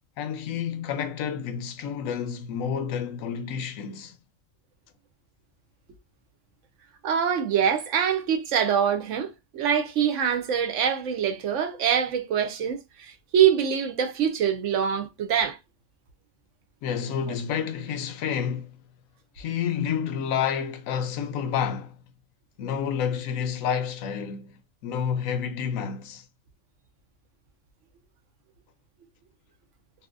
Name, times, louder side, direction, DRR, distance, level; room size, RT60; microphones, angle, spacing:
voice 1, 0.2-4.2 16.8-18.8 19.4-21.9 22.6-26.2, left 7 dB, 85° left, 1.0 m, -29 dB
voice 2, 7.0-15.6, right 8 dB, 70° right, 0.9 m, -24 dB
2.7 x 2.6 x 2.4 m
omnidirectional pair, 1.4 m